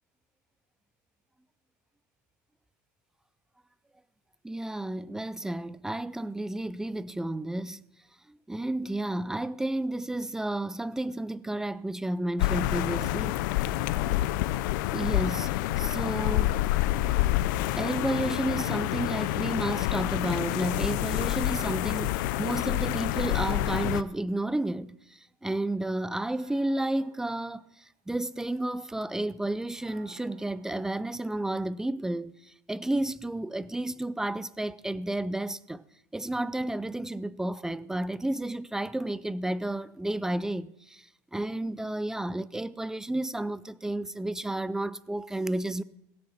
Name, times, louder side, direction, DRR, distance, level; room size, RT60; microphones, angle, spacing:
voice 1, 4.4-7.9 8.3-13.4 14.9-16.6 17.7-35.8 36.1-41.0 41.3-45.8, right 1 dB, 5° right, 0.4 m, -32 dB
sound 1, 12.4-24.0, left 15 dB, 80° left, 0.5 m, -28 dB
sound 2, 24.3-24.5 26.2-27.9 29.7-31.4, right 7 dB, 75° right, 2.8 m, -58 dB
16.5 x 6.3 x 7.2 m
supercardioid pair, 145°, 10 cm